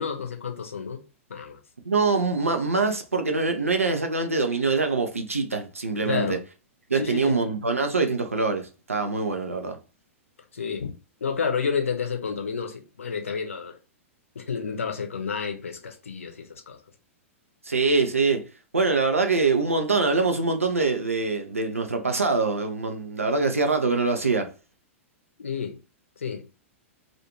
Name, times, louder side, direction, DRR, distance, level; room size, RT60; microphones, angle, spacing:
voice 1, 0.0-1.6 6.0-6.4 6.9-7.4 10.5-10.9 11.2-13.7 14.3-16.8 25.4-25.8 26.2-26.4, left 6 dB, 70° left, 0.6 m, -30 dB
voice 2, 1.8-6.4 6.9-9.8 17.6-18.5 18.7-24.5, right 4 dB, 85° right, 0.5 m, -24 dB
2.5 x 2.4 x 2.9 m
figure-of-eight pair, 100°, 7 cm